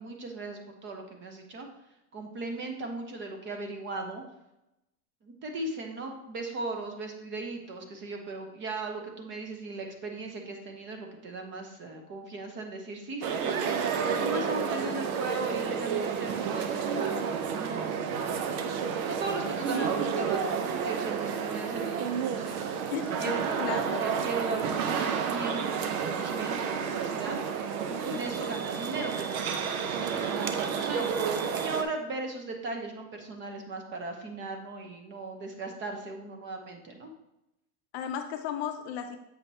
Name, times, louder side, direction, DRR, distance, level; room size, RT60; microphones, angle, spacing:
voice 1, 0.0-1.7 2.1-4.2 5.2-18.0 18.9-22.6 23.2-27.4 27.9-31.1 31.6-37.1, right 3 dB, 25° right, 4 dB, 0.8 m, -37 dB
sound 1, 13.2-31.8, right 6 dB, 65° right, 0.8 m, -30 dB
voice 2, 22.9-24.0 24.6-24.8 37.9-39.2, left 9 dB, 45° left, 6 dB, 0.6 m, -35 dB
7.4 x 5.1 x 2.8 m, 0.89 s
supercardioid pair, 140°, 45 cm